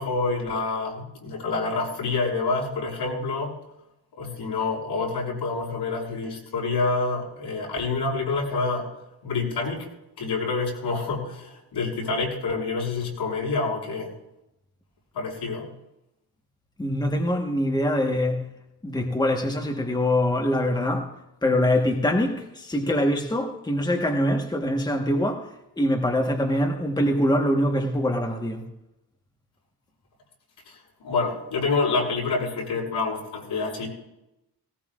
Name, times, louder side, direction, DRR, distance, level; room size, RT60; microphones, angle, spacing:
voice 1, 0.0-3.5 4.2-8.9 9.2-9.9 10.2-14.1 15.1-15.7 30.7-33.9, left 3 dB, 90° left, 6.4 m, -27 dB
voice 2, 16.8-18.5 18.8-21.1 21.4-25.5 25.8-28.6, left 1 dB, 10° left, 1.3 m, -24 dB
19.0 x 18.5 x 2.5 m
wide cardioid pair, 175°, 40 cm